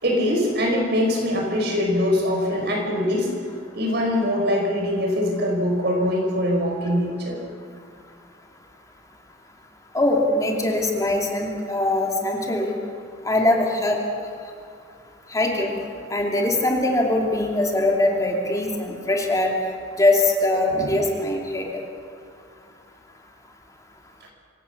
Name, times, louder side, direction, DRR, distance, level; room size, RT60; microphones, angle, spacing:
voice 1, 0.0-3.3 3.7-7.4 20.7-20.9, left 1 dB, 60° right, 1 dB, 5.5 m, -23 dB
voice 2, 9.9-12.7 13.2-14.0 15.3-15.7 16.1-19.5 19.9-21.7, left 1 dB, 20° left, 0 dB, 2.8 m, -22 dB
25.5 x 17.5 x 7.2 m, 2.3 s
head